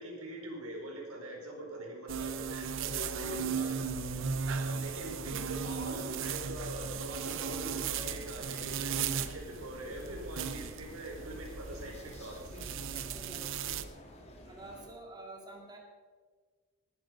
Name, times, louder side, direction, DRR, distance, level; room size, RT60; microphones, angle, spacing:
voice 1, 0.0-3.9 4.5-12.6, right 1 dB, 90° right, 0 dB, 4.8 m, -43 dB
sound 1, 2.1-13.8, right 6 dB, 65° right, 0.8 m, -37 dB
sound 2, 3.3-14.9, equal, 30° left, 2.4 m, -52 dB
voice 2, 13.1-14.1 14.5-15.8, right 2 dB, 20° right, 0 dB, 2.2 m, -49 dB
19.5 x 10.5 x 5.4 m, 1.5 s
head